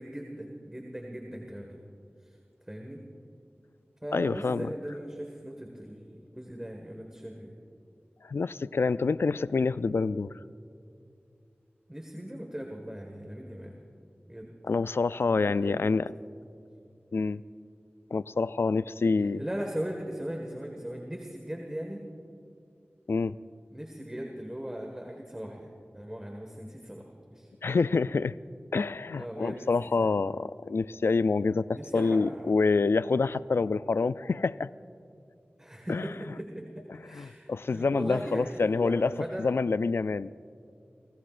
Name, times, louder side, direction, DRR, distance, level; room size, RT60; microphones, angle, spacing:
voice 1, 0.0-1.8 2.2-2.4 2.7-3.0 4.0-7.5 11.9-13.8 14.3-14.5 15.4-15.9 19.2-22.1 23.7-27.0 27.3-27.5 29.2-30.1 31.7-32.6 35.6-39.5, equal, 15° right, 1 dB, 1.7 m, -39 dB
voice 2, 4.1-4.7 8.2-10.3 14.6-16.1 17.1-17.4 18.1-19.4 23.1-23.4 27.6-28.3 28.7-34.7 35.9-36.1 37.1-39.1 39.4-40.3, left 4 dB, 75° left, 16 dB, 0.3 m, -27 dB
29.5 x 18.0 x 2.5 m, 2.5 s
wide cardioid pair, 45°, 4 cm